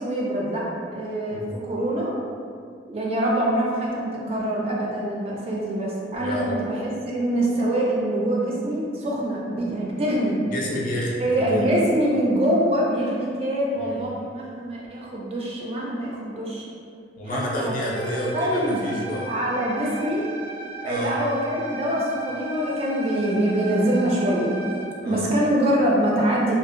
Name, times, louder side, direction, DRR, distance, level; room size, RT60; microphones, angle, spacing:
voice 1, 0.0-2.1 2.9-10.4 11.2-16.7 17.2-17.7 18.3-20.3 20.8-24.6 25.1-26.6, right 1 dB, 35° right, -4 dB, 0.4 m, -24 dB
voice 2, 6.2-6.6 10.4-11.8 13.8-14.1 17.2-19.3 20.8-21.2 25.0-25.3, equal, 45° left, -3 dB, 0.4 m, -29 dB
sound 1, 17.9-24.8, right 3 dB, 85° right, 0.7 m, -37 dB
2.7 x 2.1 x 2.5 m, 2.2 s
head